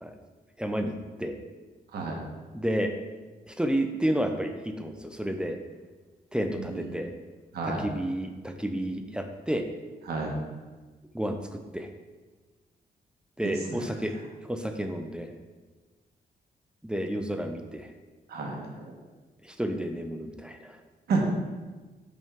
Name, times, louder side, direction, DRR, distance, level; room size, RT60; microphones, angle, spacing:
voice 1, 0.6-1.4 2.5-2.9 3.5-5.6 6.3-7.1 7.6-9.7 11.1-11.9 13.4-14.2 14.5-15.3 16.8-17.9 19.4-20.8, right 1 dB, 5° right, 5 dB, 0.4 m, -31 dB
voice 2, 6.6-7.0 7.5-7.8 10.1-10.3 13.4-13.8 18.3-18.9 21.1-21.2, right 4 dB, 80° right, -1 dB, 1.2 m, -31 dB
5.3 x 5.2 x 3.6 m, 1.3 s
cardioid pair, 105°, 16 cm